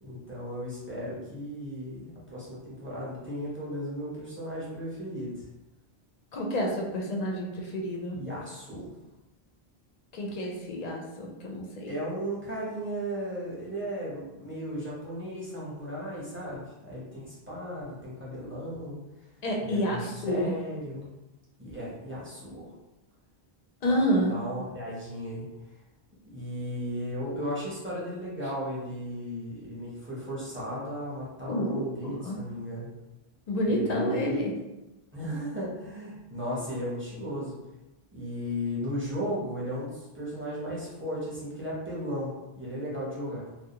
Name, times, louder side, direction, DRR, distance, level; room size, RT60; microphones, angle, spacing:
voice 1, 0.0-5.4 8.1-8.9 11.9-19.0 19.6-21.1 21.6-22.7 23.8-24.0 24.3-25.5 26.3-32.9 33.7-34.4 35.1-37.6 38.1-43.5, equal, 15° right, -7 dB, 0.6 m, -35 dB
voice 2, 6.3-8.2 10.1-11.9 19.4-20.0 20.2-20.5 23.8-24.4 31.5-32.4 33.5-34.5, equal, 55° left, 0 dB, 0.5 m, -29 dB
2.3 x 2.0 x 2.8 m, 0.99 s
omnidirectional pair, 1.0 m